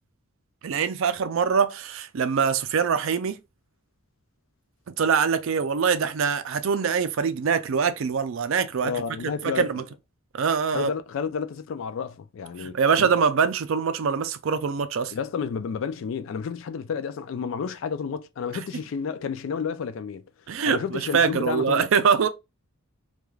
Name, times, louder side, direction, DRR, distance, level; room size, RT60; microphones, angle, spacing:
voice 1, 0.6-3.4 5.0-8.9 9.4-9.8 10.3-10.9 12.6-15.1 18.5-18.6 20.5-22.3, right 6 dB, 65° right, 0.4 m, -23 dB
voice 2, 8.8-9.7 10.7-13.1 15.1-20.2 20.6-21.9, left 6 dB, 60° left, 0.3 m, -31 dB
3.1 x 2.3 x 2.3 m
head